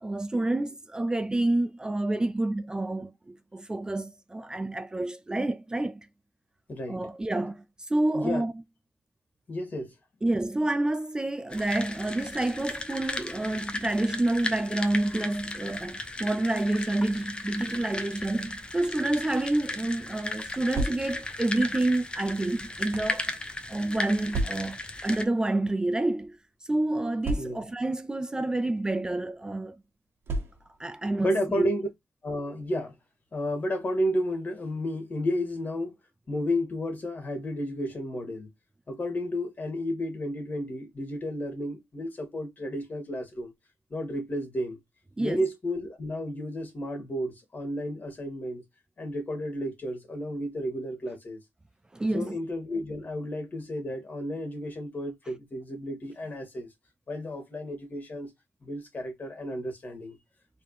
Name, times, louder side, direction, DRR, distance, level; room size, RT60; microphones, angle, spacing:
voice 1, 0.0-6.1 6.9-8.5 10.2-23.3 23.7-29.8 30.8-31.8 45.2-45.4 51.9-52.4, right 2 dB, 20° right, 0.4 m, -28 dB
voice 2, 6.7-7.0 8.1-8.4 9.5-9.9 27.4-27.6 31.2-31.9 32.2-32.9 33.3-35.9 36.3-38.5 38.9-43.5 43.9-44.8 45.2-48.6 49.0-51.4 52.1-56.7 57.1-58.3 58.6-60.2, equal, 40° left, 2.3 m, -32 dB
sound 1, 11.5-25.2, left 2 dB, 25° left, 0.9 m, -36 dB
sound 2, 20.7-21.4 22.2-23.2 24.3-24.9 25.8-26.0 26.2-26.3 27.2-27.9 28.8-29.0 30.2-30.9, right 2 dB, 70° right, 1.2 m, -33 dB
4.2 x 3.4 x 3.2 m
cardioid pair, 90°, 4 cm